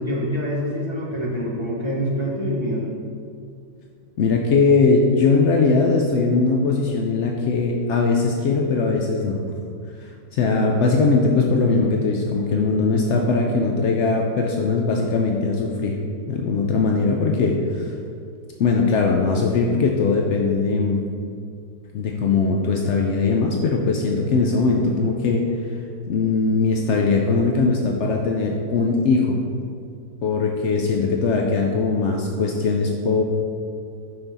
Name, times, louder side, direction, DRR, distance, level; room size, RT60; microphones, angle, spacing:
voice 1, 0.0-3.0, equal, 40° left, -5 dB, 0.4 m, -25 dB
voice 2, 4.2-9.4 10.0-16.0 16.3-17.9 18.6-21.0 21.9-25.5 26.1-29.4 30.2-33.2, left 4 dB, 85° left, 1 dB, 0.6 m, -20 dB
5.7 x 5.5 x 4.2 m, 2.3 s
omnidirectional pair, 1.8 m